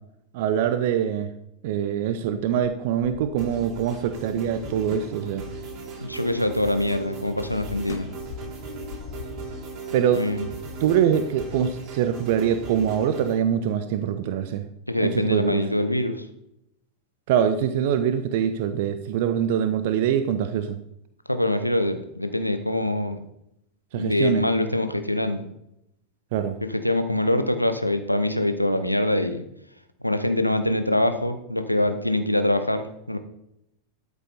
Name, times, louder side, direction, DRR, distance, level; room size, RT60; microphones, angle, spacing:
voice 1, 0.3-1.3 1.6-5.4 9.9-10.2 10.8-14.6 15.0-15.6 17.3-20.8 23.9-24.4 26.3-26.6, right 9 dB, 50° right, 10 dB, 0.7 m, -24 dB
sound 1, 2.3-6.7 6.9-9.5, left 8 dB, 50° left, 0.7 m, -42 dB
sound 2, 3.4-13.4, right 3 dB, 30° right, 3.9 m, -37 dB
voice 2, 6.0-8.1 10.1-10.5 14.9-16.2 21.3-23.2 23.9-25.5 26.6-29.4 30.0-33.2, left 1 dB, 90° left, 9 dB, 0.9 m, -24 dB
12.5 x 7.0 x 4.2 m, 0.81 s
figure-of-eight pair, 90°, 0 cm